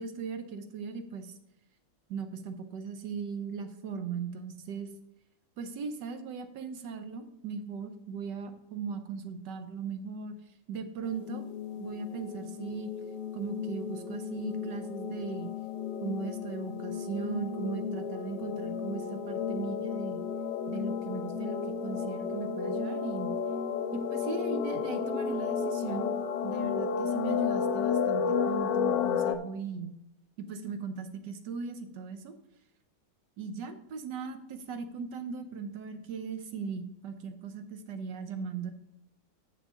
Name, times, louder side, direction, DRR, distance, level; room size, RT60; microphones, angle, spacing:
voice 1, 0.0-1.3 2.1-4.9 5.6-10.3 10.7-11.4 11.8-12.9 13.3-15.5 16.0-20.2 20.7-23.3 24.1-26.1 26.4-30.0 30.4-32.3 33.4-38.7, right 6 dB, 75° right, 8 dB, 1.4 m, -38 dB
sound 1, 11.0-29.4, left 6 dB, 80° left, 1.2 m, -32 dB
10.0 x 6.5 x 3.7 m, 0.81 s
omnidirectional pair, 1.9 m